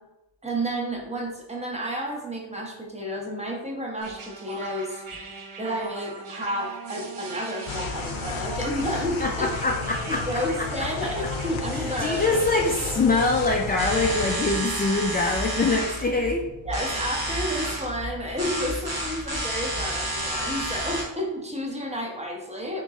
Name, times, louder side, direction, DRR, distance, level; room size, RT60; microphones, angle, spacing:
voice 1, 0.4-5.0 5.6-9.5 10.1-12.4 16.7-22.8, equal, 15° right, -1 dB, 0.8 m, -31 dB
sound 1, 4.0-13.5, right 3 dB, 85° right, 0.8 m, -39 dB
sound 2, 7.7-14.4, left 5 dB, 75° left, 0.6 m, -33 dB
voice 2, 9.2-10.9 11.7-16.4, left 3 dB, 20° left, 0 dB, 0.3 m, -24 dB
sound 3, 13.8-21.0, right 1 dB, 50° right, 1.2 m, -30 dB
3.8 x 3.1 x 3.6 m, 0.95 s
wide cardioid pair, 130°, 48 cm